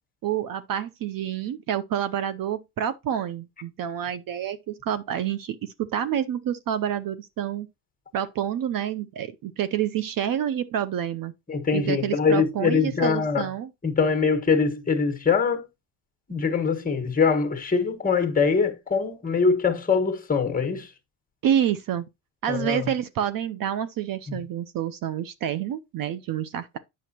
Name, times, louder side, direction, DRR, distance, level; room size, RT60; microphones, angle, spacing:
voice 1, 0.2-7.7 8.1-11.3 11.7-13.7 21.4-22.1 22.4-26.8, right 10 dB, 50° right, 0.6 m, -28 dB
voice 2, 11.5-13.5 13.8-15.6 16.3-20.9 22.5-22.9 24.3-24.4, left 5 dB, 20° left, 1.4 m, -23 dB
8.4 x 6.2 x 2.8 m
cardioid pair, 110°, 44 cm